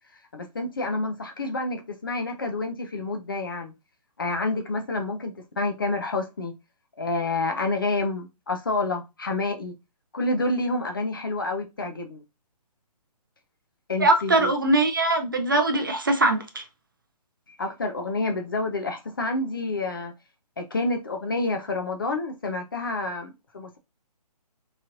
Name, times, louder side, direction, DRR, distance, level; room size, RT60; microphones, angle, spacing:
voice 1, 0.3-3.7 4.2-6.5 7.0-9.7 10.1-12.2 13.9-14.5 17.5-20.1 20.6-23.8, left 2 dB, 35° left, 0.4 m, -28 dB
voice 2, 14.0-16.6, right 2 dB, 30° right, 0.4 m, -21 dB
2.9 x 2.4 x 2.9 m
hypercardioid pair, 165°, 21 cm